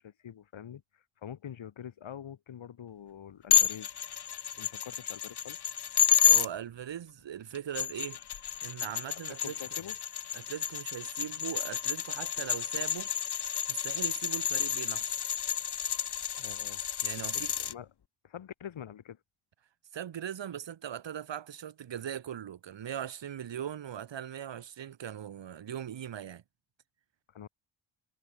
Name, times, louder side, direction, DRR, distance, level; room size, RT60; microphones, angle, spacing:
voice 1, 0.0-4.1 4.5-5.6 9.3-10.0 16.4-16.8 17.2-17.9 18.2-19.2 27.3-27.5, left 9 dB, 70° left, 7.2 m, -45 dB
sound 1, 3.5-6.5 7.5-17.7, left 9 dB, 55° left, 1.9 m, -30 dB
voice 2, 6.2-8.2 8.6-9.5 10.3-13.1 13.7-15.2 17.0-17.5 19.9-26.4, right 9 dB, 65° right, 2.4 m, -40 dB
wide cardioid pair, 155°, 48 cm